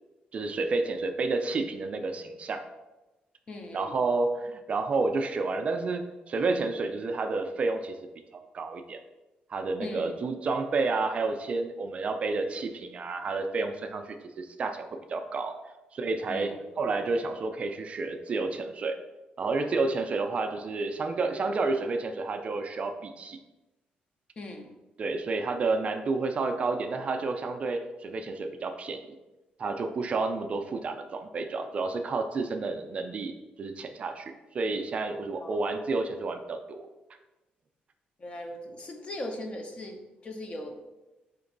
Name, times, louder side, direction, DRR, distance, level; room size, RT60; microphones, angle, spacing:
voice 1, 0.3-2.6 3.7-8.0 8.5-9.0 9.5-15.5 15.9-19.0 19.4-23.4 25.0-29.0 29.6-33.3 33.6-36.9, right 3 dB, 40° right, 6 dB, 0.3 m, -30 dB
voice 2, 3.5-4.0 9.8-10.1 16.3-16.6 24.4-24.7 35.4-35.6 38.2-40.8, left 1 dB, 35° left, 3 dB, 0.7 m, -39 dB
4.4 x 2.9 x 3.8 m, 1.1 s
cardioid pair, 130°, 3 cm